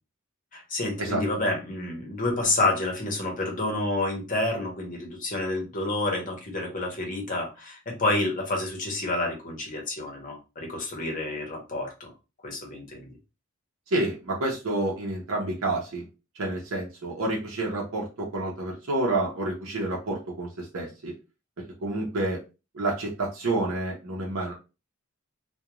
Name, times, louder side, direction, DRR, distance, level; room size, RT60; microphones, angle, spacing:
voice 1, 0.5-12.1 12.4-13.1, left 2 dB, 40° left, 1 dB, 0.8 m, -29 dB
voice 2, 13.9-16.1 16.4-21.1 21.8-22.4 22.7-24.5, right 2 dB, 70° right, -2 dB, 0.6 m, -29 dB
2.3 x 2.1 x 2.9 m, 0.29 s
head